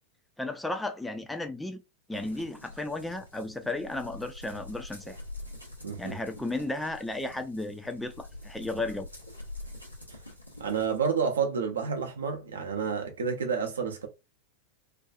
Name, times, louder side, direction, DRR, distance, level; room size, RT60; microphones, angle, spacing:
voice 1, 0.4-1.8 2.1-5.2 6.0-9.1, left 2 dB, 5° left, 0.3 m, -34 dB
sound 1, 2.1-11.0, left 2 dB, 90° left, 0.7 m, -46 dB
voice 2, 5.8-6.2 10.6-14.1, right 6 dB, 70° right, 0.6 m, -29 dB
2.5 x 2.3 x 2.4 m
figure-of-eight pair, 90°, 0 cm